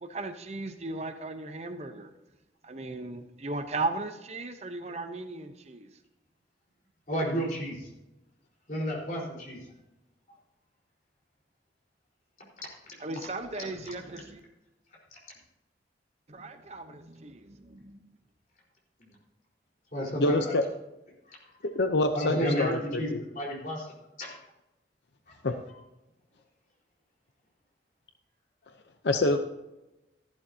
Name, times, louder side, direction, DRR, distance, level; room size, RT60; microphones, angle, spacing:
voice 1, 0.0-2.1 2.6-5.9 13.0-14.4 16.3-18.1, right 2 dB, 35° right, 8 dB, 0.8 m, -37 dB
voice 2, 7.1-7.9 8.7-9.6 19.9-20.5 21.3-21.4 22.1-23.9 24.2-24.3 25.3-25.4, equal, 45° left, -3 dB, 4.2 m, -31 dB
voice 3, 20.2-20.6 21.6-23.2 25.4-25.6 29.0-29.4, left 2 dB, 75° left, 7 dB, 0.7 m, -26 dB
13.5 x 11.5 x 2.8 m, 0.97 s
head